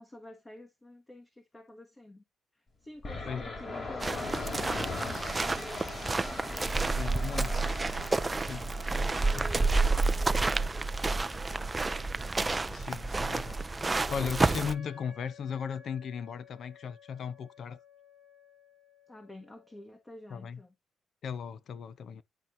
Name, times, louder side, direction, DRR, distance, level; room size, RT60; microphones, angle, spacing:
voice 1, 0.0-2.2 2.5-5.8 6.5-7.6 9.1-12.0 19.1-20.7, left 1 dB, 20° left, 1.2 m, -50 dB
sound 1, 3.0-12.9, left 3 dB, 35° left, 2.9 m, -41 dB
voice 2, 3.3-3.6 6.9-7.6 8.4-9.7 12.7-17.8 20.3-20.6 21.2-22.2, left 7 dB, 60° left, 0.7 m, -37 dB
sound 2, 4.0-14.7, right 3 dB, 20° right, 0.4 m, -30 dB
Wind instrument woodwind instrument, 14.3-20.0, left 6 dB, 80° left, 4.1 m, -55 dB
11.0 x 4.4 x 2.7 m
cardioid pair, 90°, 0 cm